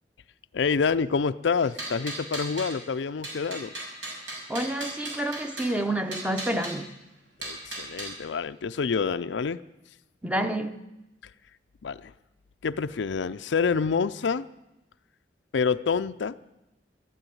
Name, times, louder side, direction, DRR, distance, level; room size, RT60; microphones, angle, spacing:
voice 1, 0.5-3.7 7.4-9.6 11.8-12.1 12.6-14.5 15.5-16.4, left 5 dB, 75° left, 13 dB, 0.5 m, -27 dB
sound 1, 1.6-2.8 3.2-5.7 6.1-6.7 7.4-8.1, right 1 dB, 85° right, 5.7 m, -36 dB
voice 2, 4.5-6.9 10.2-10.8, right 1 dB, 5° right, 8 dB, 0.8 m, -29 dB
13.0 x 12.0 x 9.3 m, 0.95 s
head